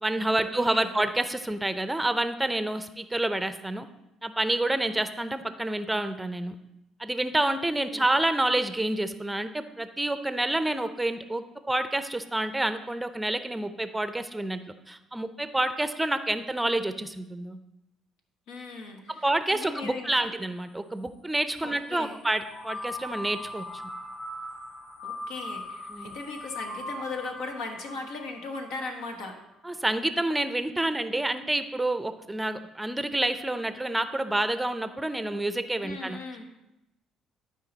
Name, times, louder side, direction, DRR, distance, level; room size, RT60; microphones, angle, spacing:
voice 1, 0.0-3.9 4.2-6.6 7.0-14.6 14.9-17.6 19.1-23.8 25.9-26.2 29.6-36.2, right 1 dB, 10° right, 10 dB, 0.5 m, -28 dB
voice 2, 0.6-0.9 7.9-8.1 18.5-19.2 19.5-20.3 21.6-22.2 25.0-29.4 35.8-36.5, left 3 dB, 85° left, 3 dB, 1.3 m, -38 dB
sound 1, 22.3-29.1, left 1 dB, 65° left, 2.3 m, -40 dB
12.0 x 4.7 x 4.0 m, 0.90 s
supercardioid pair, 85°, 0 cm